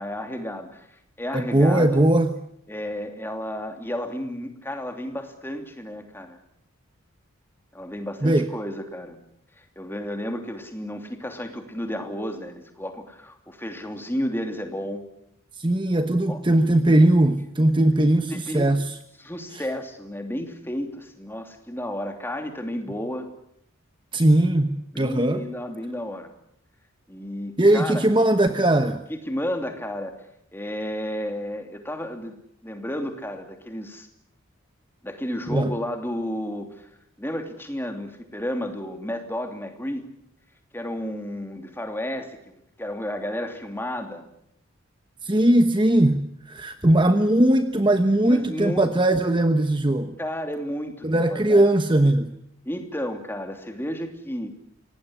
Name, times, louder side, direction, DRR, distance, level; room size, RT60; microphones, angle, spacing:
voice 1, 0.0-2.0 2.7-6.4 7.7-9.2 9.6-15.0 16.3-16.4 18.3-18.8 19.2-23.3 24.9-26.3 27.1-28.1 29.1-30.2 30.5-32.4 32.6-34.1 35.0-36.9 37.2-40.0 40.7-44.2 48.2-48.9 50.2-51.7 52.6-54.5, equal, 10° left, 5 dB, 3.0 m, -32 dB
voice 2, 1.3-2.3 8.2-8.5 15.6-19.0 24.1-25.4 27.6-29.0 35.5-35.7 45.2-50.2 51.0-52.3, right 1 dB, 20° right, 8 dB, 1.1 m, -19 dB
25.5 x 19.0 x 10.0 m, 0.75 s
head